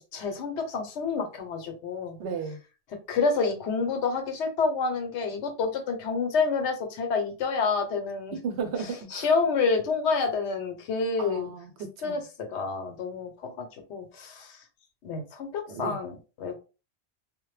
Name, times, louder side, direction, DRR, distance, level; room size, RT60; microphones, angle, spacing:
voice 1, 0.0-2.2 3.1-8.4 9.1-11.5 12.0-12.2 12.5-14.6 15.0-16.6, left 4 dB, 80° left, 1.0 m, -28 dB
voice 2, 2.2-2.6 8.3-9.3 11.2-12.2 15.7-16.0, right 5 dB, 75° right, 0.9 m, -34 dB
2.1 x 2.0 x 3.1 m
omnidirectional pair, 1.1 m